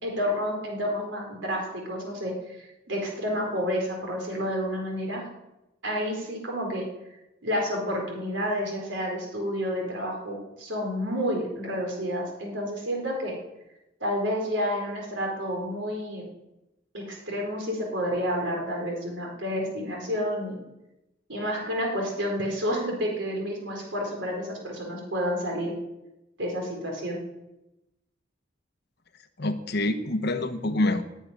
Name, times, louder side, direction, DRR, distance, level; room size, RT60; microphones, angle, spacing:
voice 1, 0.0-5.2 5.8-6.9 7.4-13.4 14.0-16.2 16.9-20.6 21.3-25.7 26.4-27.2, equal, 75° right, 0 dB, 4.2 m, -30 dB
voice 2, 29.4-31.0, left 2 dB, 60° left, 8 dB, 1.1 m, -26 dB
11.0 x 8.2 x 9.7 m, 0.94 s
head